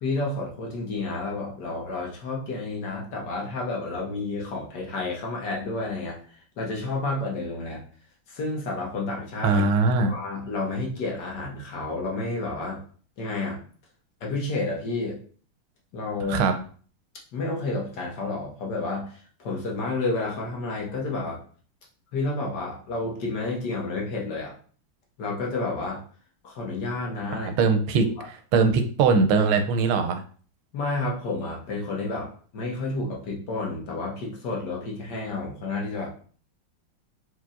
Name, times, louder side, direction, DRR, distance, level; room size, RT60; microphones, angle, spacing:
voice 1, 0.0-6.2 6.6-7.8 8.3-9.7 9.9-12.8 13.2-13.6 14.2-15.2 15.9-16.4 17.3-21.4 22.1-24.5 25.2-26.0 26.4-27.5 27.9-28.3 30.7-36.1, left 3 dB, 60° left, -2 dB, 1.5 m, -30 dB
voice 2, 9.4-10.1 16.3-16.6 27.3-30.2, right 4 dB, 85° right, 7 dB, 1.4 m, -21 dB
4.7 x 4.0 x 2.4 m, 0.43 s
omnidirectional pair, 2.3 m